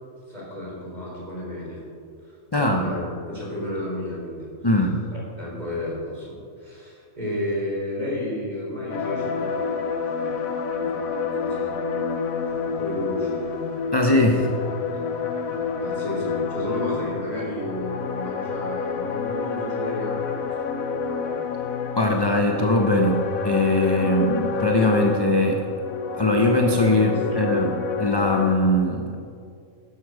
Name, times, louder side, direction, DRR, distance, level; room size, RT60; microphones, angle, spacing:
voice 1, 0.3-1.8 2.2-4.5 5.1-10.4 10.8-12.1 12.5-13.9 14.9-15.0 15.5-21.7 27.1-27.2, left 1 dB, 30° right, -4 dB, 4.1 m, -33 dB
voice 2, 2.5-2.9 4.6-5.0 13.9-14.5 22.0-25.7 26.1-27.7 28.0-29.2, left 1 dB, 20° left, 2 dB, 0.7 m, -21 dB
sound 1, 8.9-28.5, left 5 dB, 85° left, 1.3 m, -28 dB
12.0 x 11.5 x 5.0 m, 2.3 s
omnidirectional pair, 1.4 m